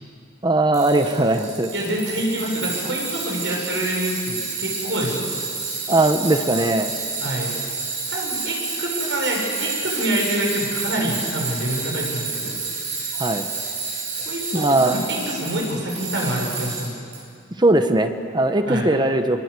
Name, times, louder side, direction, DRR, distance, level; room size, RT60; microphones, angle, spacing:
voice 1, 0.4-1.7 5.9-6.9 13.2-13.4 14.5-15.0 17.6-19.4, right 2 dB, 25° right, 7 dB, 1.1 m, -19 dB
Tools, 0.7-17.2, right 4 dB, 40° right, 7.6 m, -29 dB
voice 2, 1.7-5.2 7.2-7.5 8.1-12.6 14.2-15.0 15.3-16.9 18.7-18.9, right 1 dB, 80° right, -1 dB, 7.1 m, -26 dB
26.0 x 23.0 x 8.4 m, 2.5 s
head